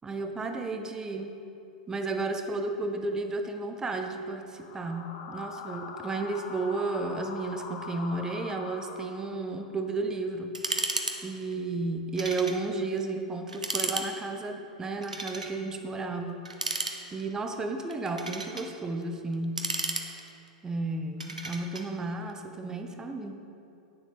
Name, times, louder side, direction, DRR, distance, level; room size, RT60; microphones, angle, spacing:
voice 1, 0.0-1.4 1.9-10.6 11.2-16.5 17.1-19.7 20.6-23.4, right 3 dB, 15° right, 5 dB, 1.0 m, -33 dB
sound 1, 4.5-9.6, left 4 dB, 45° left, 1.3 m, -42 dB
sound 2, 10.5-11.2 11.4-11.5 12.2-12.6 13.0-13.1 13.5-14.1 15.0-15.5 16.4-17.3 17.9-18.7 19.3-20.5 21.2-21.9, right 3 dB, 80° right, 1.0 m, -33 dB
10.5 x 9.6 x 5.3 m, 2.7 s
figure-of-eight pair, 90°, 4 cm